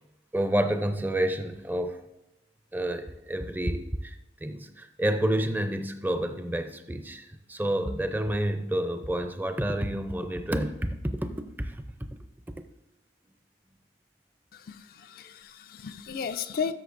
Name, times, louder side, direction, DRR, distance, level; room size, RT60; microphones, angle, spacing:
voice 1, 0.3-2.0 2.7-4.2 4.4-11.8, right 1 dB, 10° right, 8 dB, 0.5 m, -29 dB
voice 2, 14.5-16.7, left 6 dB, 55° left, 10 dB, 0.4 m, -34 dB
13.0 x 6.6 x 2.6 m, 0.94 s
head